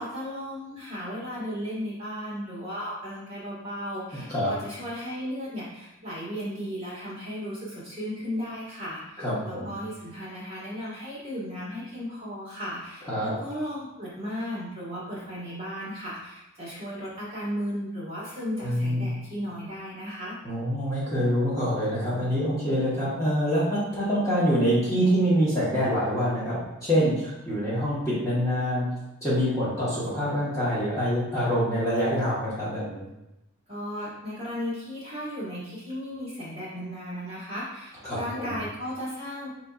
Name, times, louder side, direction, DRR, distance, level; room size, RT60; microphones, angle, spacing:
voice 1, 0.0-20.3 33.7-39.5, equal, 25° right, -9 dB, 1.4 m, -35 dB
voice 2, 9.2-9.7 13.1-13.3 18.6-19.1 20.4-28.9 29.2-33.1 38.0-38.6, equal, 15° left, -10 dB, 1.2 m, -25 dB
4.4 x 3.9 x 2.4 m, 0.92 s
head